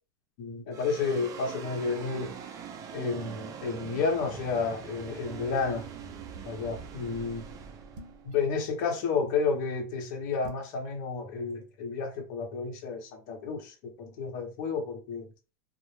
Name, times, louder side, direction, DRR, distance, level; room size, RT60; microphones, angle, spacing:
voice 1, 0.4-2.3 2.9-5.9 6.4-7.4 8.2-15.3, left 4 dB, 60° left, 0.8 m, -31 dB
sound 1, 0.7-9.2, right 7 dB, 35° right, 0.4 m, -43 dB
sound 2, 8.0-8.4 10.4-10.8, equal, 60° right, 0.7 m, -45 dB
2.1 x 2.0 x 3.1 m
hypercardioid pair, 110°, 11 cm